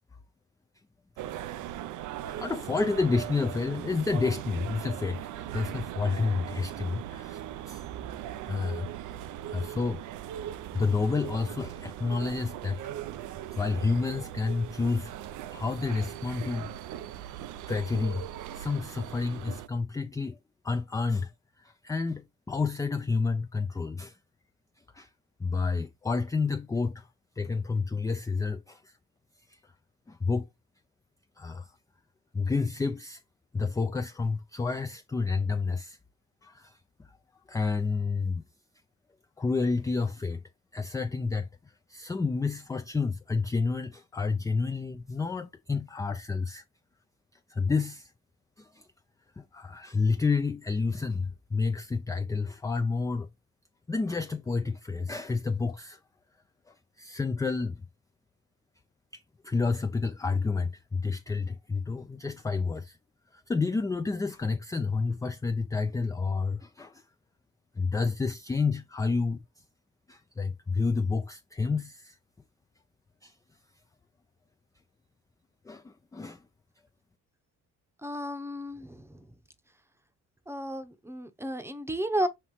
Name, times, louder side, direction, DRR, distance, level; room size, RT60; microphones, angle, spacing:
sound 1, 1.2-19.7, right 12 dB, 80° right, 0.5 m, -39 dB
voice 1, 2.2-7.8 8.4-8.9 9.5-10.1 10.7-12.8 13.3-15.1 15.5-16.7 17.7-18.2 18.5-20.4 20.6-21.3 21.6-24.2 24.9-25.1 25.4-27.1 27.4-29.0 29.5-29.7 30.1-30.5 31.4-31.7 32.3-33.2 33.5-36.0 36.4-36.8 37.1-37.2 37.5-38.4 39.4-40.4 40.7-46.6 47.5-48.1 48.6-48.9 49.4-53.3 53.9-56.0 56.7-57.9 59.1-63.0 63.3-67.0 67.8-69.6 70.1-72.2 73.2-73.4 75.6-76.4, left 4 dB, 10° left, 0.3 m, -30 dB
voice 2, 78.0-79.3 80.5-82.3, right 1 dB, 10° right, 0.8 m, -33 dB
5.8 x 2.9 x 3.1 m
cardioid pair, 90°, 30 cm